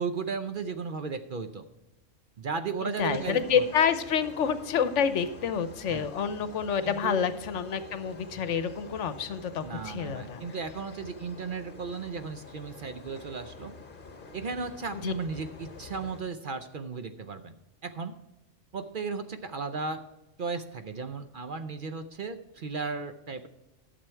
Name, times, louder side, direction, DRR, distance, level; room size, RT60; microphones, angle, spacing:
voice 1, 0.0-1.6 2.4-3.6 5.9-6.1 6.8-7.3 9.6-13.7 14.3-17.5 17.8-18.1 18.7-20.0 20.4-23.5, right 5 dB, 55° right, 9 dB, 0.7 m, -35 dB
voice 2, 3.0-10.4 15.0-15.1, left 7 dB, 70° left, 12 dB, 1.1 m, -28 dB
sound 1, 3.0-16.2, left 4 dB, 45° left, 1.4 m, -48 dB
12.0 x 6.9 x 4.5 m, 1.0 s
omnidirectional pair, 1.3 m